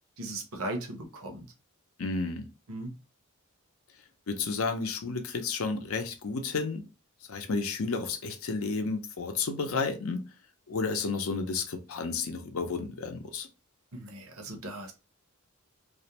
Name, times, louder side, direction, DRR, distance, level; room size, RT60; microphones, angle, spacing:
voice 1, 0.2-1.5 2.7-2.9 13.9-14.9, right 2 dB, 80° right, 0.7 m, -38 dB
voice 2, 2.0-2.5 4.3-6.9 7.3-10.2 10.7-13.5, left 4 dB, 80° left, 0.5 m, -32 dB
2.4 x 2.1 x 2.8 m
head